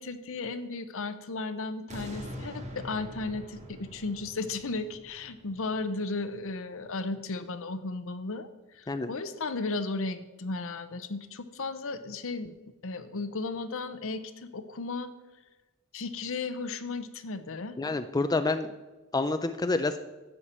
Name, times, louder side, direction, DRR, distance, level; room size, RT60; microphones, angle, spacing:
voice 1, 0.0-8.5 8.7-12.6 12.8-15.1 15.9-17.8, left 3 dB, 70° left, 11 dB, 0.8 m, -35 dB
sound 1, 1.9-7.0 7.5-7.6, equal, 35° right, 1.6 m, -44 dB
voice 2, 17.8-18.7 19.1-20.0, left 3 dB, 20° left, 9 dB, 0.4 m, -28 dB
12.0 x 8.5 x 4.3 m, 1.1 s
head